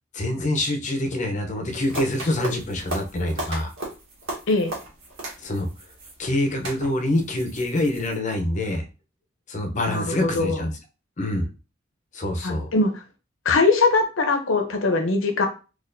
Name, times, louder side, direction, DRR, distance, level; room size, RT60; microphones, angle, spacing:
voice 1, 0.1-3.7 5.4-5.7 6.2-8.8 9.5-10.7 11.2-11.5 12.1-12.7, left 1 dB, 40° left, 4 dB, 0.7 m, -25 dB
sound 1, 1.7-8.2, right 1 dB, 80° right, 1.3 m, -36 dB
voice 2, 9.9-10.6 12.4-13.0 13.4-15.5, left 3 dB, 75° left, 5 dB, 0.7 m, -21 dB
4.2 x 2.4 x 2.6 m, 0.32 s
head